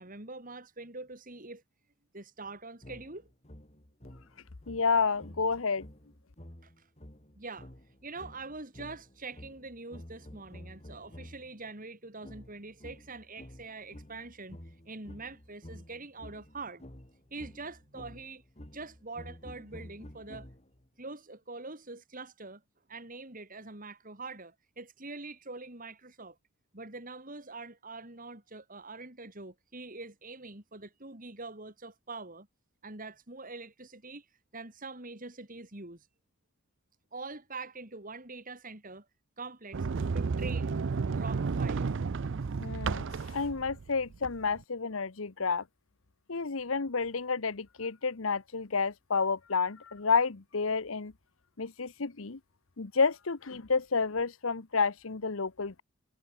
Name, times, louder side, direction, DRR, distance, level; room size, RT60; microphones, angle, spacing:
voice 1, 0.0-1.6 2.1-3.3 6.6-6.9 7.4-7.7 8.0-16.8 17.3-18.4 18.7-20.5 21.0-22.6 22.9-26.4 26.7-32.5 32.8-34.3 34.5-36.1 37.1-39.1 39.4-39.9 40.1-40.8 41.1-41.8, right 3 dB, 40° right, 3.9 m, -44 dB
sound 1, 2.8-11.6 12.2-20.9, equal, 30° left, 3.4 m, -51 dB
voice 2, 4.7-5.9 42.6-45.6 46.3-51.1 51.6-52.4 52.8-55.8, left 4 dB, 70° left, 1.0 m, -30 dB
Sliding door, 39.7-44.6, right 4 dB, 60° right, 0.5 m, -32 dB
head